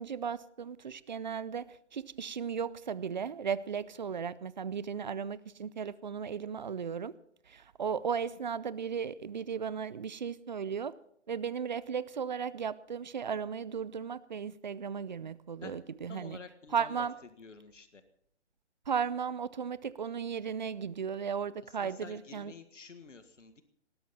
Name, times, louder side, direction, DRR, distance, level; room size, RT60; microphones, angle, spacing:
voice 1, 0.0-7.2 7.5-10.9 11.3-16.4 16.7-17.2 18.9-22.5, right 7 dB, 40° right, 0.6 m, -35 dB
voice 2, 16.1-17.1 17.4-18.0 21.8-23.6, left 4 dB, 80° left, 1.8 m, -49 dB
19.0 x 16.5 x 4.2 m
figure-of-eight pair, 155°, 36 cm